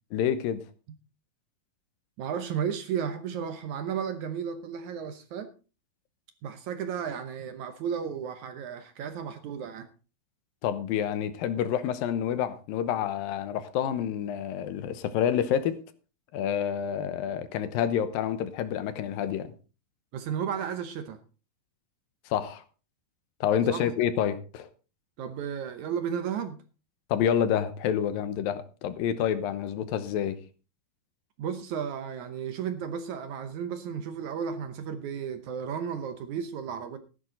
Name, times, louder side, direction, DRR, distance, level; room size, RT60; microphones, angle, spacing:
voice 1, 0.1-0.6 10.6-15.8 16.3-19.5 22.3-22.6 23.4-24.7 27.1-30.4, left 9 dB, 80° left, 2.7 m, -28 dB
voice 2, 2.2-5.5 6.4-9.9 20.1-21.2 23.7-23.9 25.2-26.6 31.4-37.0, right 7 dB, 70° right, 2.0 m, -33 dB
14.5 x 11.5 x 3.9 m
omnidirectional pair, 4.2 m